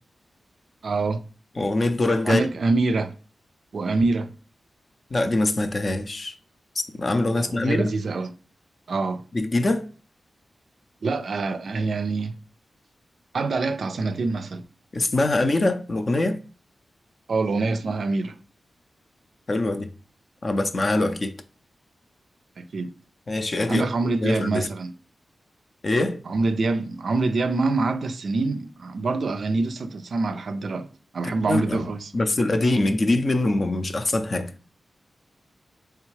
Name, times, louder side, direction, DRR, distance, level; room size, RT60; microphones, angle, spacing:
voice 1, 0.8-1.2 2.2-3.1 3.7-4.3 7.3-8.3 8.9-9.2 11.0-12.4 13.3-14.6 17.3-18.3 22.6-22.9 23.7-24.9 26.3-30.9 31.1-32.1, right 3 dB, 70° right, 0.4 m, -25 dB
voice 2, 1.6-2.5 5.1-6.3 6.9-7.9 9.3-9.9 14.9-16.4 19.5-19.9 20.4-21.3 23.3-23.9 24.2-24.7 25.8-26.2 31.2-31.8 32.1-34.5, left 2 dB, 45° left, 0.5 m, -23 dB
3.4 x 3.3 x 3.2 m
cardioid pair, 75°, 0 cm